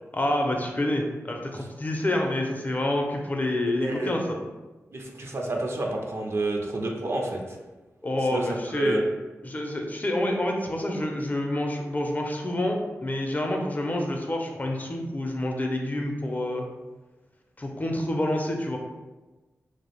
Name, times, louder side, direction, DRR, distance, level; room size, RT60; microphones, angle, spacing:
voice 1, 0.1-4.4 8.0-9.0 9.4-16.7 17.6-18.8, left 1 dB, 30° left, 2 dB, 0.4 m, -28 dB
voice 2, 3.8-4.2 4.9-7.6 8.3-9.0, right 2 dB, 50° right, 1 dB, 0.4 m, -29 dB
2.4 x 2.0 x 2.8 m, 1.2 s
cardioid pair, 45°, 6 cm